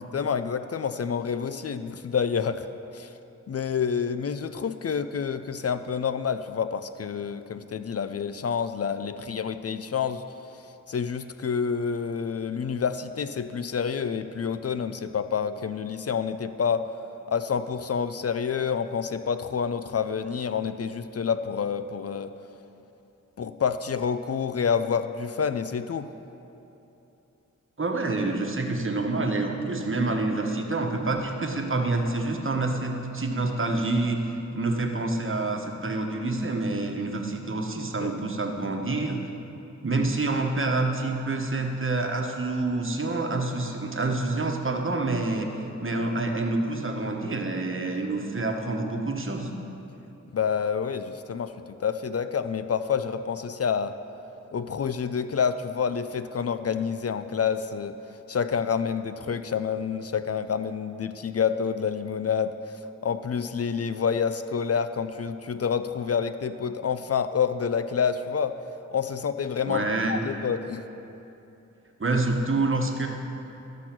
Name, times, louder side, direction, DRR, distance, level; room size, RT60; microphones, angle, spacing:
voice 1, 0.1-2.6 2.9-3.1 3.5-10.2 10.9-16.9 17.3-22.3 23.4-26.1 38.0-38.1 50.3-54.0 54.5-58.0 58.3-68.6 68.9-70.8, left 6 dB, 55° left, 11 dB, 0.4 m, -28 dB
voice 2, 27.8-34.2 34.5-39.2 39.8-49.5 69.7-70.2 72.0-73.1, right 2 dB, 45° right, 2 dB, 1.2 m, -27 dB
13.0 x 6.2 x 6.0 m, 2.9 s
wide cardioid pair, 55°, 30 cm